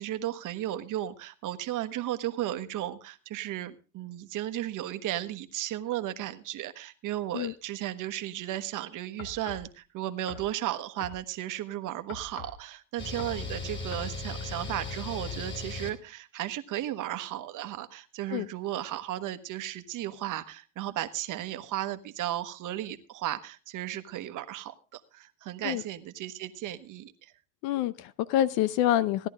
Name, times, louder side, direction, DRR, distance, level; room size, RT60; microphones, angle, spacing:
voice 1, 0.0-27.3, right 13 dB, 45° right, 10 dB, 1.3 m, -35 dB
sound 1, 9.2-9.7 10.3-10.5 11.0-11.2 12.1-12.6 13.2-13.4 13.9-14.1, left 5 dB, 85° left, 2.5 m, -43 dB
sound 2, 13.0-15.9, left 3 dB, 25° left, 3.5 m, -37 dB
voice 2, 27.6-29.3, left 12 dB, 55° left, 17 dB, 0.7 m, -27 dB
16.5 x 10.5 x 3.6 m, 0.34 s
supercardioid pair, 100°, 44 cm